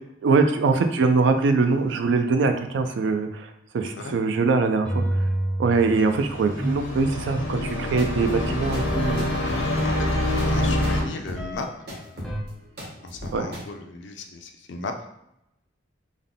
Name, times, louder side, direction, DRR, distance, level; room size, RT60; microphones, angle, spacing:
voice 1, 0.2-5.0 5.6-9.3 13.3-13.5, right 4 dB, 70° right, 6 dB, 0.3 m, -22 dB
sound 1, 4.7-10.3 11.4-11.9 12.2-12.4, right 1 dB, ahead, 0.5 m, -32 dB
sound 2, 6.0-11.0, left 1 dB, 90° left, 0.9 m, -26 dB
sound 3, 7.7-13.6, equal, 55° right, 1.1 m, -37 dB
voice 2, 9.8-11.7 12.1-12.5 13.0-15.1, left 3 dB, 75° left, 4 dB, 0.5 m, -36 dB
3.6 x 2.2 x 3.7 m, 0.81 s
head